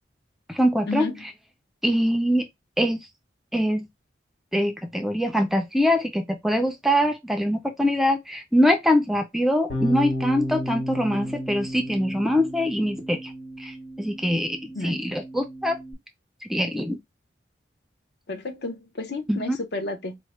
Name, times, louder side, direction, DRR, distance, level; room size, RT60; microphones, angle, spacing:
voice 1, 0.5-1.3 1.8-2.5 2.8-3.0 3.5-3.9 4.5-13.3 13.6-15.8 16.5-17.0 19.3-19.6, equal, ahead, 0.3 m, -23 dB
Bass guitar, 9.7-15.9, equal, 80° left, 2.1 m, -33 dB
voice 2, 18.3-20.2, left 2 dB, 60° left, 0.6 m, -31 dB
4.4 x 2.1 x 3.0 m
head